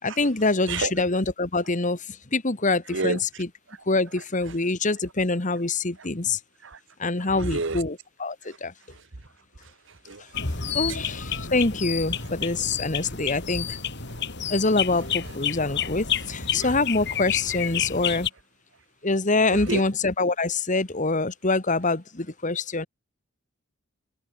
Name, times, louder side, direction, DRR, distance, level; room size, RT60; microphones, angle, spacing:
voice 1, 0.0-3.5 3.9-6.4 7.0-8.7 10.4-13.8 14.5-18.3 19.0-22.9, left 3 dB, 35° left, 1.6 m, -25 dB
voice 2, 7.4-7.8 10.1-10.2 19.7-19.8, right 3 dB, 60° right, 1.3 m, -27 dB
sound 1, 10.3-18.3, left 8 dB, 55° left, 4.8 m, -30 dB
head